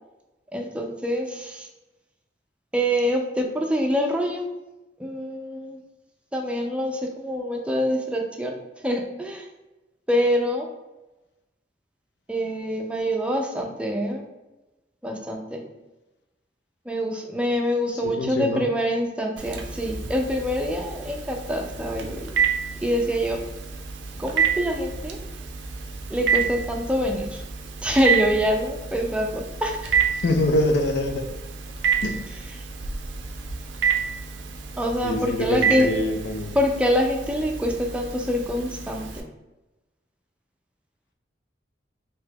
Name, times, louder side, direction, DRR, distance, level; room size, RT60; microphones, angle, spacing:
voice 1, 0.5-1.7 2.7-4.5 5.0-5.8 6.3-9.5 10.1-10.7 12.3-14.3 15.0-15.6 16.9-22.3 22.8-23.4 24.2-25.2 26.1-27.4 27.8-29.9 34.8-35.9 36.5-39.3, equal, 5° right, 2 dB, 0.3 m, -25 dB
voice 2, 18.0-18.6 30.2-31.3 32.0-32.2 35.0-36.6, left 2 dB, 65° left, 5 dB, 0.4 m, -25 dB
Telephone, 19.4-39.2, right 7 dB, 90° right, 0.4 m, -29 dB
2.7 x 2.2 x 3.4 m, 1.0 s
head